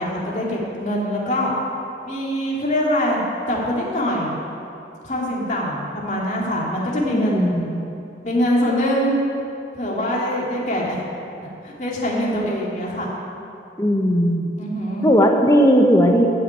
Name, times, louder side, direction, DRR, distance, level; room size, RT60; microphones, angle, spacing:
voice 1, 0.0-1.5 2.0-3.2 3.5-4.4 5.0-7.6 8.2-9.2 9.7-11.0 11.6-13.1 14.6-15.1, equal, 40° left, -4 dB, 2.5 m, -23 dB
voice 2, 7.1-7.7 13.8-14.5 15.0-16.2, equal, 20° left, 2 dB, 1.1 m, -17 dB
13.5 x 5.9 x 8.8 m, 2.7 s
head